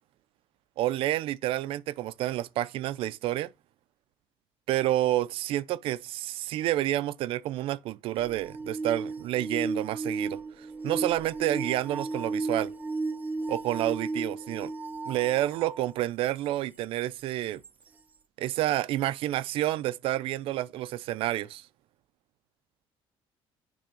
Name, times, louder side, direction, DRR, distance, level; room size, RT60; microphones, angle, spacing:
voice 1, 0.8-3.5 4.7-12.7 13.5-14.7 15.1-17.6 18.4-21.7, right 14 dB, 70° right, 0.5 m, -29 dB
sound 1, 8.2-15.8 16.5-16.6 17.6-17.7, right 3 dB, 15° right, 0.6 m, -34 dB
10.0 x 3.5 x 5.2 m
cardioid pair, 170°, 10 cm